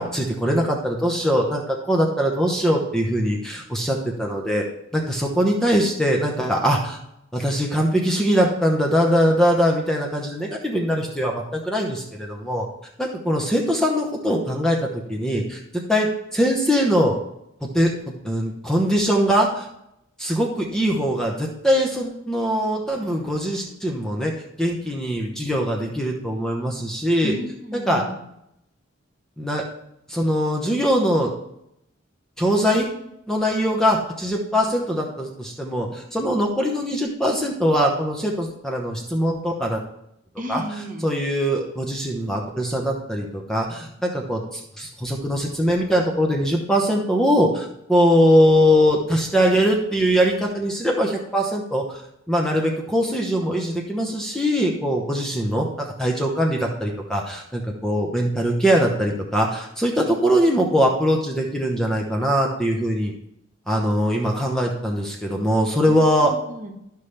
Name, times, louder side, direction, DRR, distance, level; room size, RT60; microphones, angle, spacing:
voice 1, 0.0-4.6 4.9-7.0 7.3-12.7 13.0-17.2 17.6-19.7 20.2-24.3 24.6-27.3 27.9-28.0 29.4-29.6 30.1-31.3 32.4-32.9 33.3-39.8 40.5-40.6 41.0-52.0 52.3-63.1 63.7-66.3, equal, 5° left, -1 dB, 0.9 m, -22 dB
voice 2, 27.2-28.2 40.4-41.1 65.9-66.7, equal, 40° right, 2 dB, 1.1 m, -33 dB
12.0 x 5.6 x 3.3 m, 0.79 s
head